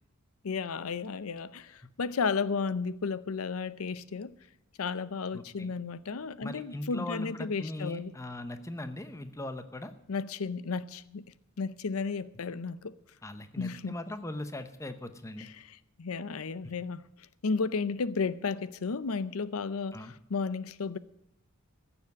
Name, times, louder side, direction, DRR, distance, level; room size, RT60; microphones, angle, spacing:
voice 1, 0.4-4.3 4.8-8.1 10.1-11.2 11.6-13.0 13.6-14.0 15.4-15.5 16.0-17.0 17.4-21.0, left 4 dB, 85° left, 0.6 m, -33 dB
voice 2, 5.3-5.7 6.4-9.9 13.2-15.5 19.9-20.1, left 1 dB, 15° left, 0.8 m, -40 dB
15.0 x 7.1 x 9.5 m
head